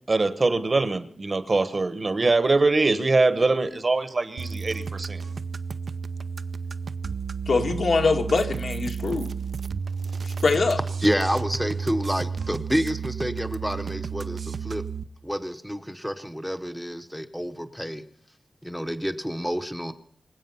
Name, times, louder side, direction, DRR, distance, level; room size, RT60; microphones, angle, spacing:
voice 1, 0.1-5.2, right 3 dB, 35° right, 1.1 m, -23 dB
sound 1, 4.4-15.0, right 6 dB, 60° right, 0.6 m, -32 dB
voice 2, 7.5-9.3 10.2-10.8, left 4 dB, 65° left, 2.0 m, -23 dB
voice 3, 11.0-14.8 15.2-18.0 18.6-19.9, equal, ahead, 0.9 m, -28 dB
25.0 x 8.6 x 5.7 m
wide cardioid pair, 145°, 0 cm